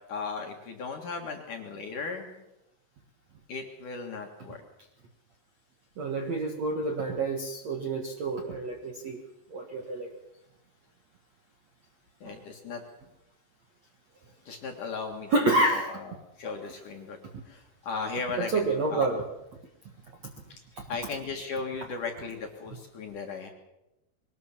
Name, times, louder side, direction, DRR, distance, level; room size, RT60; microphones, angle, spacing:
voice 1, 0.1-2.4 3.5-4.6 12.2-12.8 14.5-15.3 15.7-16.1 16.4-17.2 17.5-19.1 20.9-23.5, left 4 dB, 55° left, 3 dB, 2.7 m, -36 dB
voice 2, 6.0-9.2 9.5-10.1 12.2-12.4 15.3-15.9 18.4-19.2 20.7-20.8, right 2 dB, 55° right, 2 dB, 1.9 m, -28 dB
23.0 x 19.0 x 7.4 m, 0.93 s
omnidirectional pair, 5.6 m